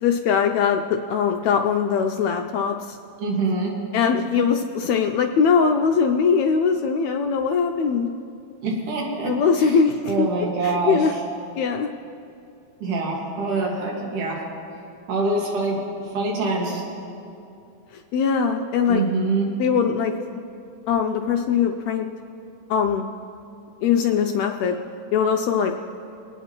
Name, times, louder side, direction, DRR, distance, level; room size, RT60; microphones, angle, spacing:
voice 1, 0.0-3.0 3.9-8.1 9.2-10.3 10.6-11.1 11.6-11.9 18.1-19.0 19.6-20.1 20.9-22.1 22.7-23.0 23.8-24.8 25.1-25.7, left 6 dB, 85° left, 3 dB, 1.6 m, -21 dB
voice 2, 3.2-3.7 8.6-9.3 9.6-9.8 10.1-11.2 12.8-14.4 15.1-16.9 18.9-19.5, right 3 dB, 75° right, -2 dB, 3.2 m, -25 dB
25.0 x 9.2 x 2.9 m, 2.6 s
omnidirectional pair, 3.7 m